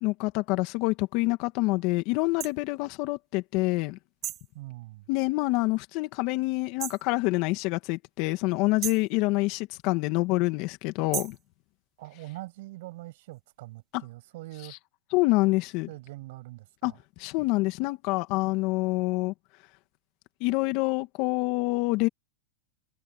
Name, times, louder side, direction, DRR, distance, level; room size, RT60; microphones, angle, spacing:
voice 1, 0.0-4.0 5.1-11.4 15.1-15.9 16.8-16.9 17.2-19.3 20.4-22.1, left 22 dB, 50° left, 2.2 m, -26 dB
sound 1, 2.4-2.5 4.2-4.5 6.8-7.1 8.8-9.1 11.1-11.4, right 12 dB, 35° right, 4.0 m, -34 dB
voice 2, 4.5-5.0 12.0-14.8 15.9-17.0, right 19 dB, 65° right, 7.4 m, -43 dB
hypercardioid pair, 125°, 0 cm